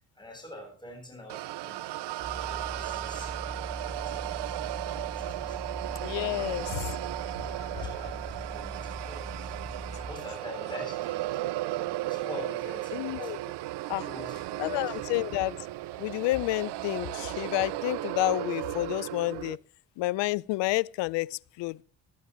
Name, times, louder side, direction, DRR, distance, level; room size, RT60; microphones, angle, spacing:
voice 1, 0.1-1.9 2.3-3.3 4.1-4.2 5.1-5.6 6.2-6.4 7.7-9.6 10.0-13.4 13.9-15.0, left 1 dB, 10° left, 8.0 m, -45 dB
sound 1, 1.3-19.6, right 17 dB, 60° right, 0.7 m, -35 dB
sound 2, 2.2-10.1, right 1 dB, 85° right, 7.2 m, -41 dB
voice 2, 6.0-7.0 7.5-7.9 12.9-13.4 13.9-14.0 14.6-15.5 16.0-19.6 20.0-21.8, left 19 dB, 65° left, 0.6 m, -30 dB
20.0 x 12.5 x 3.2 m
hypercardioid pair, 50°, 47 cm